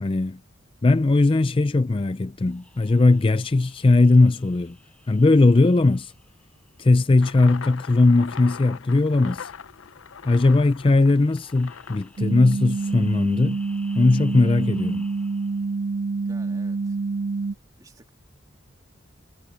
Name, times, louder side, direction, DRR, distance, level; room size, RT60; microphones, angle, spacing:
voice 1, 0.0-0.4 0.8-4.8 5.1-6.1 6.8-9.5 10.2-13.6 13.9-15.1, left 2 dB, 25° left, 0.4 m, -19 dB
sound 1, 2.4-7.2 11.0-15.7, left 1 dB, 5° left, 4.2 m, -54 dB
sound 2, 7.2-13.0, left 7 dB, 75° left, 0.6 m, -41 dB
sound 3, 12.2-17.6, right 4 dB, 45° right, 0.3 m, -27 dB
voice 2, 16.2-17.0 17.8-18.1, right 1 dB, 20° right, 2.9 m, -51 dB
head